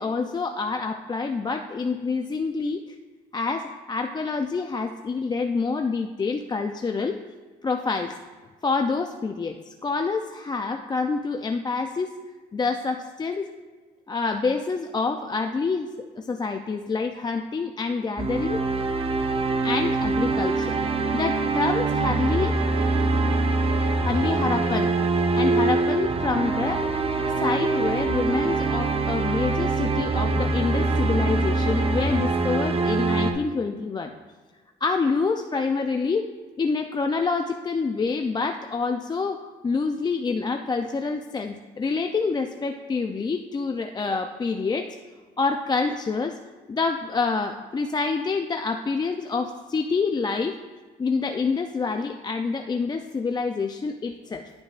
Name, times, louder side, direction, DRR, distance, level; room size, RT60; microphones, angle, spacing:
voice 1, 0.0-2.8 3.3-7.2 7.6-8.2 8.6-12.1 12.5-13.5 14.1-18.6 19.6-20.8 21.1-22.6 24.0-24.9 25.3-26.9 27.4-34.1 34.8-36.3 36.6-45.0 45.4-46.4 46.7-50.6 51.0-54.5, left 4 dB, 25° left, 5 dB, 0.4 m, -27 dB
sound 1, 18.2-33.3, right 3 dB, 35° right, 0.7 m, -24 dB
11.0 x 6.1 x 2.5 m, 1.4 s
cardioid pair, 90°, 18 cm